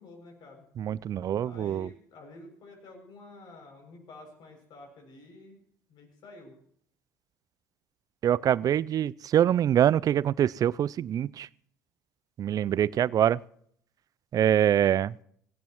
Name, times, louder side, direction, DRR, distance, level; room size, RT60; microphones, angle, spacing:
voice 1, 0.0-0.7 1.3-5.6 5.9-6.5, left 2 dB, 55° left, 3 dB, 7.0 m, -49 dB
voice 2, 0.8-1.9 8.2-11.5 12.4-13.4 14.3-15.2, right 10 dB, 45° right, 22 dB, 0.5 m, -24 dB
18.5 x 17.5 x 3.1 m, 0.66 s
hypercardioid pair, 60°, 9 cm